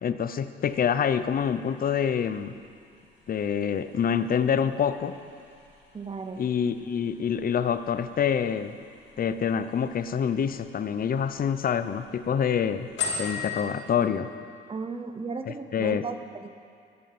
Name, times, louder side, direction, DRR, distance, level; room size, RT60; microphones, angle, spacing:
voice 1, 0.0-2.5 3.3-5.2 6.4-8.8 9.2-12.9 13.2-14.3 15.7-16.0, left 7 dB, 45° left, 12 dB, 0.6 m, -26 dB
sound 1, 0.6-13.6, left 5 dB, 70° left, 2.5 m, -42 dB
voice 2, 5.9-6.4 14.7-16.6, right 4 dB, 30° right, 8 dB, 0.8 m, -35 dB
13.0 x 9.7 x 5.9 m, 2.4 s
cardioid pair, 90°, 20 cm